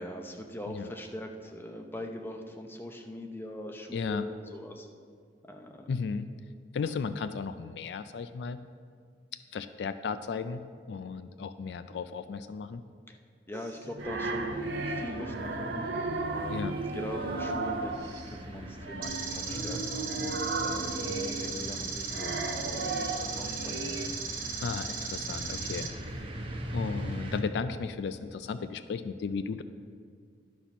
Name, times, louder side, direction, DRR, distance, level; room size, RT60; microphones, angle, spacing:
voice 1, 0.0-4.9 5.5-5.9 13.1-13.2 13.5-15.9 16.3-20.1 20.6-24.1, left 1 dB, 15° left, 3 dB, 0.7 m, -42 dB
voice 2, 3.9-4.3 5.9-6.3 6.7-8.6 9.5-12.8 16.5-16.8 24.6-25.9 26.7-29.6, left 5 dB, 70° left, 11 dB, 0.3 m, -35 dB
sound 1, 13.5-18.3 18.8-24.1, right 2 dB, 85° right, 0.7 m, -35 dB
sound 2, 14.0-27.4, equal, 30° right, 0.9 m, -42 dB
sound 3, 19.0-25.9, right 5 dB, 55° right, 1.0 m, -37 dB
11.5 x 4.2 x 5.9 m, 2.1 s
head